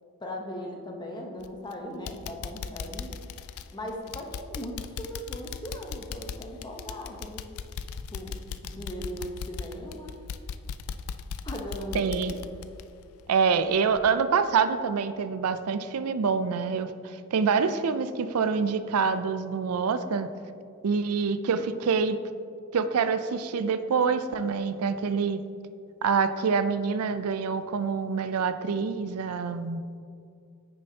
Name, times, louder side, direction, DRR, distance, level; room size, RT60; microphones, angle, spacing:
voice 1, 0.2-3.1 3.7-7.4 8.1-8.4 8.6-10.1 11.4-12.4, equal, 20° left, 1 dB, 0.9 m, -38 dB
sound 1, 1.4-1.7 2.1-13.6 14.0-14.1 14.6-14.7, left 6 dB, 70° left, 0.3 m, -38 dB
voice 2, 11.9-12.3 13.3-20.3 20.8-22.2 22.7-25.4 26.0-29.8, right 5 dB, 80° right, 11 dB, 0.4 m, -26 dB
9.5 x 6.6 x 2.8 m, 2.3 s
head